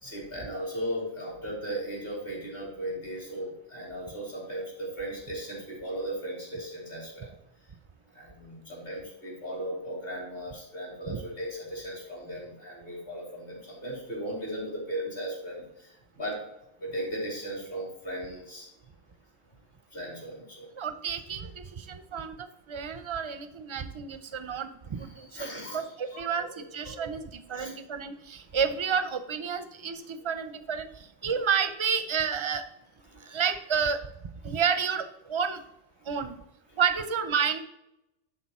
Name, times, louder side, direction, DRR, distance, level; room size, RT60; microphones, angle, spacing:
voice 1, 0.0-7.3 8.1-16.4 16.8-18.7 19.9-20.7 24.9-27.1 27.5-27.7 33.0-33.5 34.5-34.6 36.7-36.8, right 1 dB, 60° left, -4 dB, 3.3 m, -37 dB
voice 2, 20.8-30.9 31.2-32.6 33.2-34.0 34.4-35.6 36.1-36.4 36.8-37.6, right 7 dB, 35° right, 10 dB, 0.5 m, -30 dB
10.5 x 4.1 x 4.2 m, 0.86 s
omnidirectional pair, 1.1 m